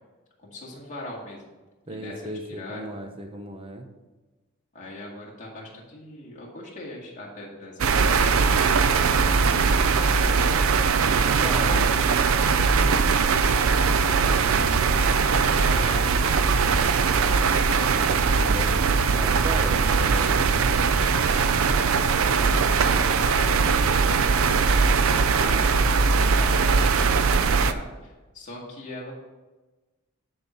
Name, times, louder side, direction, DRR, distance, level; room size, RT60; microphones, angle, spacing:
voice 1, 0.4-1.5 1.9-2.9 4.7-10.8 11.3-11.9 14.3-14.9 15.2-16.5 21.6-29.1, left 1 dB, 35° left, -4 dB, 2.2 m, -40 dB
voice 2, 1.9-3.9 11.2-12.0 17.7-20.8, equal, 25° right, 4 dB, 0.8 m, -36 dB
sound 1, 7.8-27.7, right 5 dB, 70° right, 0.5 m, -21 dB
10.5 x 4.5 x 5.5 m, 1.2 s
head